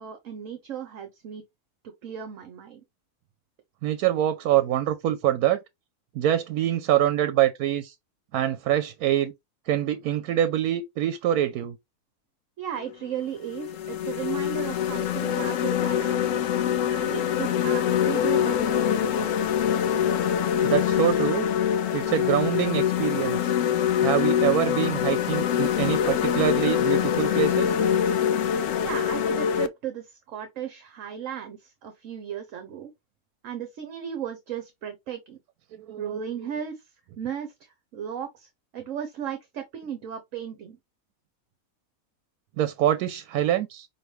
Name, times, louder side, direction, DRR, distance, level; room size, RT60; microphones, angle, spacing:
voice 1, 0.0-1.4 2.0-2.8 12.6-16.6 16.9-19.3 28.8-32.9 33.4-35.4 36.0-40.8, right 9 dB, 65° right, 1.1 m, -36 dB
voice 2, 3.8-5.6 6.2-7.9 8.3-9.3 9.7-11.8 20.6-21.5 21.9-23.5 24.0-27.8 35.7-36.2 42.6-43.9, right 11 dB, 85° right, 1.1 m, -25 dB
sound 1, 12.8-12.9 13.5-29.7, left 9 dB, 70° left, 0.9 m, -24 dB
5.7 x 2.9 x 3.1 m
omnidirectional pair, 1.6 m